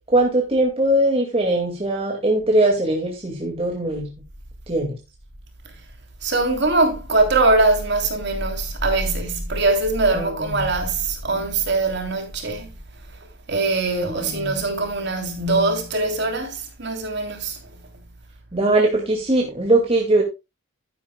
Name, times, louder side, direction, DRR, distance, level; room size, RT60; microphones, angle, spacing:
voice 1, 0.1-4.1 4.7-5.0 10.1-10.7 14.0-14.6 18.5-20.2, right 1 dB, 25° right, 2.1 m, -21 dB
voice 2, 6.2-12.7 13.5-17.8, right 2 dB, 50° right, 3.2 m, -22 dB
12.0 x 10.5 x 2.3 m
head